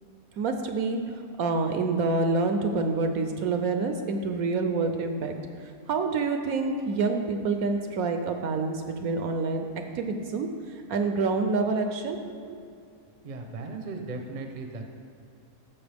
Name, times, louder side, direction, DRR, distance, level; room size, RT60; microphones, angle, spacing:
voice 1, 0.4-5.4 5.9-9.7 9.9-12.6, right 3 dB, 70° right, 6 dB, 1.0 m, -27 dB
voice 2, 13.2-14.9, right 3 dB, 40° right, 4 dB, 0.7 m, -37 dB
13.0 x 7.0 x 3.4 m, 2.5 s
omnidirectional pair, 1.7 m